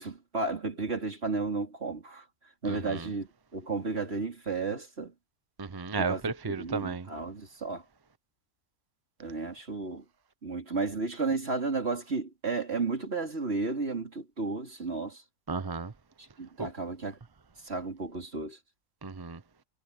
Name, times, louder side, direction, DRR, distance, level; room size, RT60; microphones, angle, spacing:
voice 1, 0.0-2.2 2.6-5.1 6.0-7.8 9.2-10.0 10.4-15.2 16.4-17.2 17.6-18.6, right 3 dB, 45° right, 3.6 m, -33 dB
voice 2, 2.7-3.1 5.6-7.1 15.5-15.9 16.6-16.7 19.0-19.4, right 4 dB, 25° right, 0.5 m, -33 dB
omnidirectional pair, 1.6 m